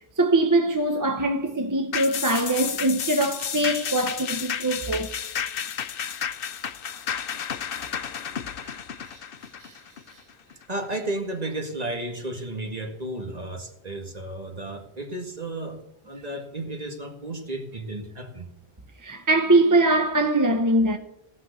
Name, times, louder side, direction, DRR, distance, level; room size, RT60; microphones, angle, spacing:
voice 1, 0.2-5.1 8.6-8.8 9.1-9.2 9.6-9.8 19.0-21.0, right 2 dB, 20° right, 0.7 m, -22 dB
sound 1, 1.9-10.6 11.0-11.1, left 8 dB, 65° left, 0.9 m, -32 dB
voice 2, 10.7-18.5, right 2 dB, 40° right, 2.0 m, -33 dB
17.0 x 6.3 x 8.1 m
omnidirectional pair, 1.1 m